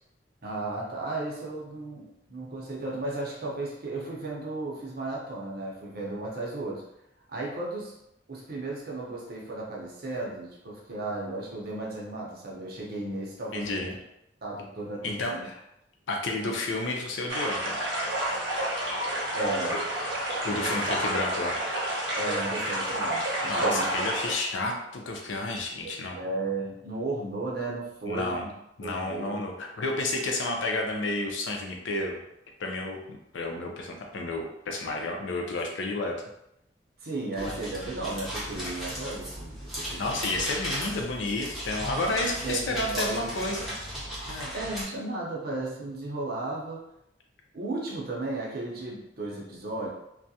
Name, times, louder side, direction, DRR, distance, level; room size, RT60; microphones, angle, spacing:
voice 1, 0.4-6.9 7.3-7.9 8.3-13.9 14.4-15.4 16.4-16.5 19.3-19.8 20.5-20.8 22.2-23.9 25.8-28.5 28.8-29.4 37.0-40.4 42.4-43.7 44.5-46.8 47.5-49.9, right 2 dB, 55° right, -2 dB, 0.7 m, -35 dB
voice 2, 13.5-14.0 15.0-15.5 16.1-17.8 20.4-21.6 23.5-26.2 28.1-28.5 28.8-32.2 32.6-36.1 37.4-37.5 40.0-43.7 44.3-44.5, left 2 dB, 85° left, 2 dB, 0.5 m, -31 dB
sound 1, 17.3-24.3, right 1 dB, 85° right, 0.8 m, -29 dB
sound 2, 37.3-44.8, equal, ahead, 0.8 m, -36 dB
2.3 x 2.1 x 2.7 m, 0.81 s
head